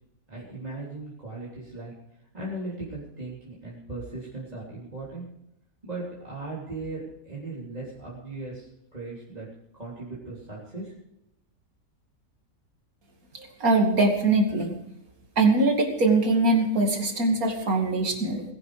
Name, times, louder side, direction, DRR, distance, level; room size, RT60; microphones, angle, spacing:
voice 1, 0.3-1.9 2.3-5.3 5.8-9.5 9.7-10.9, right 2 dB, 25° right, -7 dB, 3.7 m, -38 dB
voice 2, 13.3-14.8 15.4-18.4, right 2 dB, 70° right, 3 dB, 2.9 m, -22 dB
20.5 x 10.5 x 5.0 m, 0.82 s
omnidirectional pair, 1.6 m